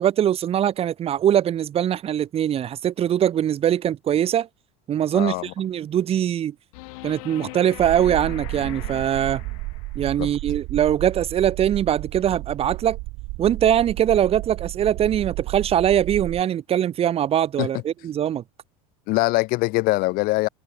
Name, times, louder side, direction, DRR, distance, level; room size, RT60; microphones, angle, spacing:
voice 1, 0.0-4.5 4.9-6.5 7.0-9.4 9.9-13.0 13.4-18.4, right 10 dB, 30° right, 1.8 m, -22 dB
voice 2, 5.1-5.5 10.2-10.3 17.6-17.7 19.1-20.5, left 22 dB, 55° left, 1.1 m, -22 dB
sound 1, 6.7-10.1 12.7-12.8, left 25 dB, 75° left, 3.5 m, -39 dB
sound 2, 7.8-16.4, right 24 dB, 55° right, 3.2 m, -33 dB
supercardioid pair, 135°, 19 cm